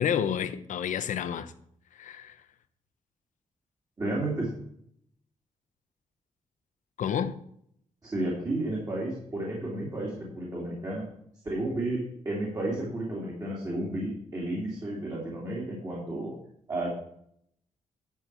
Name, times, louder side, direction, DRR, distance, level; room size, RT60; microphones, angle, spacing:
voice 1, 0.0-1.5 2.0-2.4 7.0-7.4, left 8 dB, 80° left, 0.8 m, -29 dB
voice 2, 4.0-4.5 8.0-11.0 11.4-16.3 16.7-16.9, right 1 dB, 30° right, 2.7 m, -32 dB
11.0 x 7.4 x 4.6 m
wide cardioid pair, 165°, 13 cm